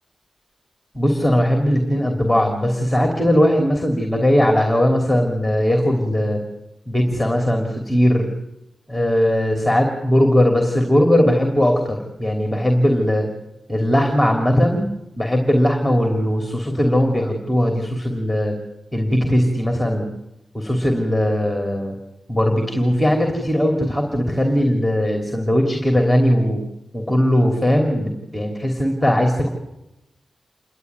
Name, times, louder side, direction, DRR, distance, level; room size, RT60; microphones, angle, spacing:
voice 1, 0.9-6.4 6.9-8.3 8.9-13.3 13.7-14.9 15.2-18.6 18.9-20.0 20.5-21.9 22.3-26.6 26.9-29.5, equal, ahead, 2 dB, 3.1 m, -19 dB
28.5 x 12.5 x 9.5 m, 0.91 s
wide cardioid pair, 155°, 0 cm